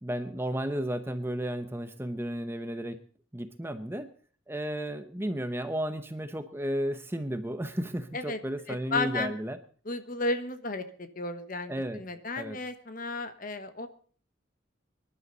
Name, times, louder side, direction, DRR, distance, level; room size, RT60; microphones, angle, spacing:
voice 1, 0.0-3.0 3.3-4.1 4.5-9.6 11.7-12.0 12.4-12.6, right 1 dB, 10° right, 9 dB, 0.8 m, -33 dB
voice 2, 8.7-9.3 9.8-11.7 12.0-13.9, left 2 dB, 45° left, 9 dB, 1.3 m, -33 dB
24.0 x 11.0 x 4.0 m, 0.43 s
head